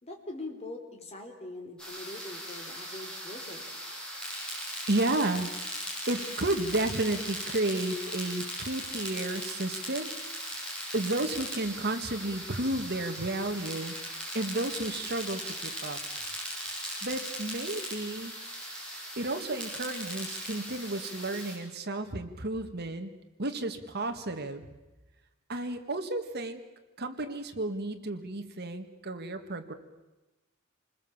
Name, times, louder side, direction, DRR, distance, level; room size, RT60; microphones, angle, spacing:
voice 1, 0.0-3.7, left 2 dB, 30° left, 2 dB, 3.6 m, -42 dB
sound 1, 1.8-21.5, equal, 5° left, 7.5 m, -39 dB
voice 2, 4.9-5.5 6.1-10.1 10.9-13.9 14.3-16.0 17.0-18.3 19.2-23.1 23.4-24.7 25.5-26.6 27.0-29.7, right 2 dB, 50° right, 6 dB, 1.8 m, -32 dB
28.0 x 20.5 x 7.3 m, 1.1 s
head